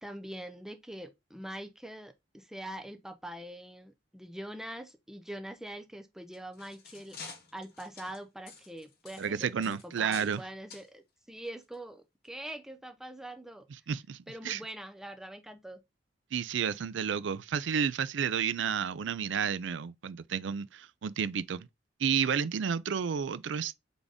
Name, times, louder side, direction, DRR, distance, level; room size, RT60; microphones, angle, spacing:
voice 1, 0.0-7.2 7.5-13.6 14.3-15.8, right 1 dB, 5° right, 0.6 m, -43 dB
sound 1, 6.2-10.4 10.7-10.9 11.6-11.7 12.2-12.3, left 5 dB, 55° left, 1.1 m, -49 dB
voice 2, 9.2-10.4 13.9-14.2 14.4-14.6 16.3-21.7 22.0-23.8, right 7 dB, 80° right, 0.4 m, -31 dB
3.9 x 3.5 x 3.6 m
head